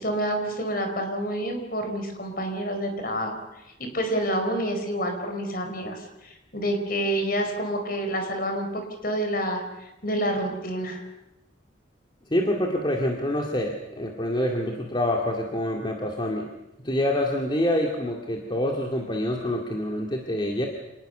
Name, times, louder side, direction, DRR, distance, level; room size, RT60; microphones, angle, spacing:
voice 1, 0.0-3.4 3.8-11.0, right 1 dB, 50° left, 5 dB, 4.8 m, -28 dB
voice 2, 12.3-16.5 16.8-20.7, left 1 dB, 25° left, 1 dB, 2.3 m, -26 dB
27.0 x 19.5 x 6.8 m, 0.92 s
head